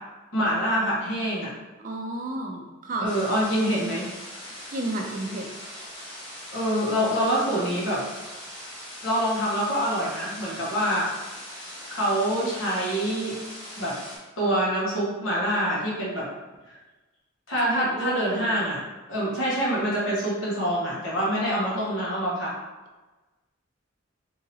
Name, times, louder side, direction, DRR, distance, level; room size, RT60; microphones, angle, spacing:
voice 1, 0.3-1.5 3.0-4.1 6.5-8.0 9.0-11.1 11.9-13.4 13.8-14.0 14.4-16.3 16.7-16.8 17.5-18.8 19.1-22.5, equal, 75° left, -7 dB, 1.4 m, -25 dB
voice 2, 1.8-3.1 4.7-5.5 17.6-18.5 21.3-22.0, right 2 dB, 40° right, 2 dB, 0.4 m, -32 dB
sound 1, 3.0-14.2, left 1 dB, 25° left, 1.3 m, -41 dB
3.8 x 2.8 x 2.8 m, 1.2 s
head